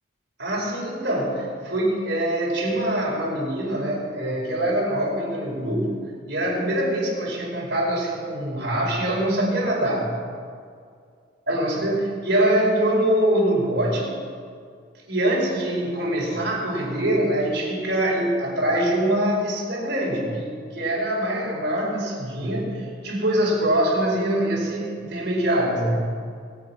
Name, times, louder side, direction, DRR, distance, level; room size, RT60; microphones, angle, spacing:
voice 1, 0.4-6.0 6.3-10.1 11.5-14.1 15.1-26.0, right 1 dB, 55° right, -4 dB, 5.1 m, -24 dB
23.5 x 8.6 x 5.8 m, 2.2 s
head